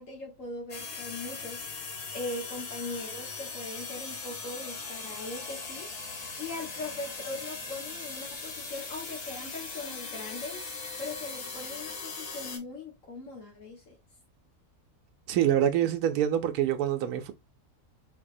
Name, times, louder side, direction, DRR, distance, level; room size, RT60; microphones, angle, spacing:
voice 1, 0.0-1.7 2.1-5.9 6.4-14.0, left 2 dB, 55° left, 1.6 m, -40 dB
sound 1, 0.7-12.6, left 4 dB, 75° left, 1.6 m, -39 dB
voice 2, 15.3-17.3, right 10 dB, 75° right, 1.1 m, -26 dB
4.0 x 2.8 x 2.5 m
omnidirectional pair, 1.7 m